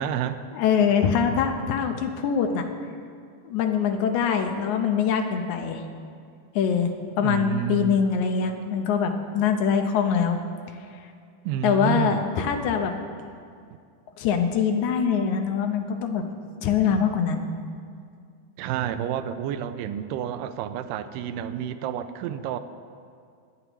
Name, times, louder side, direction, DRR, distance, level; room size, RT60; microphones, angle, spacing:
voice 1, 0.0-0.4 7.2-8.0 11.5-12.3 18.6-22.6, right 10 dB, 80° right, 9 dB, 2.2 m, -29 dB
voice 2, 0.5-2.7 3.4-5.8 6.6-6.9 7.2-10.4 11.6-12.9 14.2-16.2 16.6-17.5, left 7 dB, 70° left, 5 dB, 2.0 m, -23 dB
23.5 x 9.5 x 3.0 m, 2.2 s
omnidirectional pair, 3.9 m